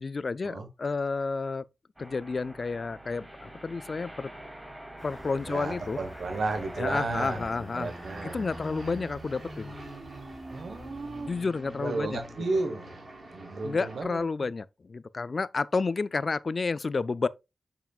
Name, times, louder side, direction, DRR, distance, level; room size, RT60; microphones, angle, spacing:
voice 1, 0.0-1.6 2.0-4.3 5.0-6.0 6.8-7.9 8.2-9.7 11.3-12.2 13.6-17.3, left 4 dB, 55° left, 0.3 m, -30 dB
sound 1, 2.0-7.5, right 1 dB, 15° right, 2.4 m, -45 dB
sound 2, 5.0-11.4, right 1 dB, 30° right, 2.9 m, -51 dB
voice 2, 5.5-7.4 7.7-8.4 10.5-11.3 11.8-13.0 13.3-14.2, right 3 dB, 80° right, 1.2 m, -33 dB
sound 3, 5.9-14.0, right 1 dB, 55° right, 3.5 m, -44 dB
7.0 x 5.7 x 2.3 m
cardioid pair, 55°, 0 cm